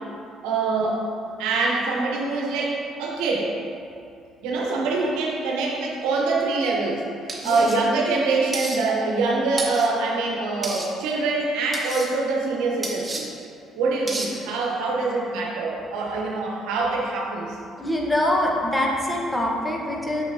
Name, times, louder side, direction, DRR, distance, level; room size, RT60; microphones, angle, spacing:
voice 1, 0.4-1.0 1.4-3.5 4.4-7.0 7.4-13.3 13.8-17.6, right 3 dB, 85° right, -2 dB, 0.9 m, -24 dB
sound 1, 7.3-7.8 8.5-8.8 9.6-9.9 10.6-10.9 11.7-12.1 12.8-13.2 14.1-14.3, right 2 dB, 25° right, 1.2 m, -31 dB
voice 2, 17.8-20.2, left 1 dB, 10° left, -2 dB, 1.3 m, -24 dB
7.1 x 6.3 x 2.8 m, 2.5 s
supercardioid pair, 65°, 0 cm